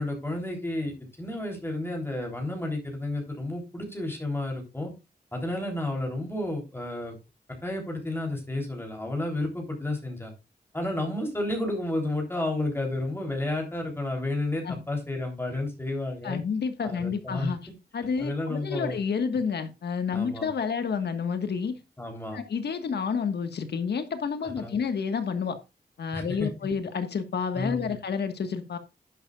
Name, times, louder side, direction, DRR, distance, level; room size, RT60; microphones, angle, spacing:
voice 1, 0.0-4.9 5.3-7.1 7.6-10.3 10.7-16.4 16.8-17.5 18.2-19.0 20.1-20.5 22.0-22.4 24.4-24.8 26.1-26.5 27.6-28.0, left 1 dB, 15° left, 3.5 m, -31 dB
voice 2, 16.2-17.6 17.9-21.7 22.3-25.6 26.0-28.8, left 6 dB, 90° left, 1.5 m, -29 dB
11.0 x 10.5 x 2.4 m
wide cardioid pair, 115°, 17 cm